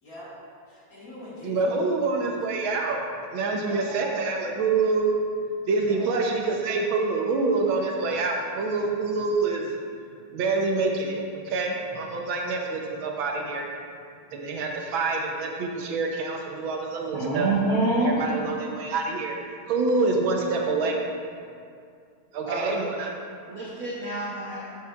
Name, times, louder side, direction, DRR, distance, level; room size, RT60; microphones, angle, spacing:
voice 1, 0.0-0.3 0.7-1.7 3.5-4.4 5.8-6.2, right 1 dB, 45° left, -7 dB, 1.7 m, -41 dB
voice 2, 1.4-3.0 3.3-5.3 5.7-9.7 10.3-13.6 14.3-17.5 18.0-19.4 19.7-21.0 22.3-23.1, right 3 dB, 75° right, 1 dB, 1.4 m, -26 dB
voice 3, 17.1-18.2 22.5-22.9 23.5-24.7, right 2 dB, 55° right, -6 dB, 1.0 m, -26 dB
8.2 x 7.6 x 2.3 m, 2.3 s
omnidirectional pair, 2.3 m